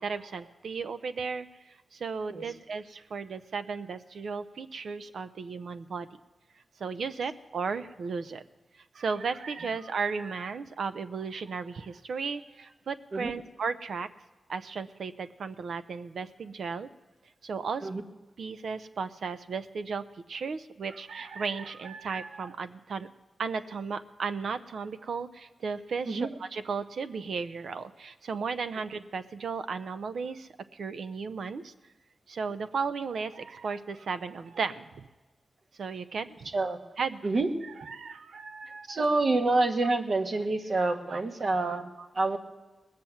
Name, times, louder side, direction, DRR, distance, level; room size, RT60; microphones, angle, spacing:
voice 1, 0.0-6.1 6.8-8.4 8.9-14.1 14.5-16.9 17.4-17.9 18.4-23.1 23.4-31.7 32.3-35.0 35.7-36.5 37.0-37.2 37.6-39.0 39.8-39.9 41.1-41.2 42.0-42.1, right 5 dB, 80° right, 11 dB, 0.7 m, -35 dB
voice 2, 38.9-41.9 42.1-42.4, right 2 dB, 65° right, 4 dB, 1.5 m, -27 dB
19.0 x 7.6 x 7.3 m, 1.2 s
cardioid pair, 50°, 0 cm